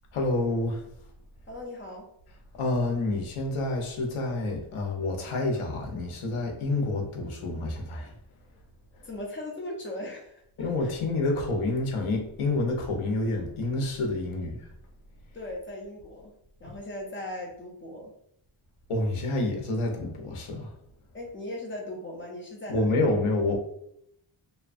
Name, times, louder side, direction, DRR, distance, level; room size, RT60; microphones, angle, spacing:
voice 1, 0.1-0.8 2.6-8.1 10.6-14.7 18.9-20.7 22.7-23.6, left 2 dB, 90° left, 0.7 m, -28 dB
voice 2, 1.5-2.1 9.0-10.9 15.3-18.2 21.1-23.0, left 1 dB, 25° left, 0.7 m, -39 dB
2.7 x 2.1 x 2.5 m
wide cardioid pair, 115°, 49 cm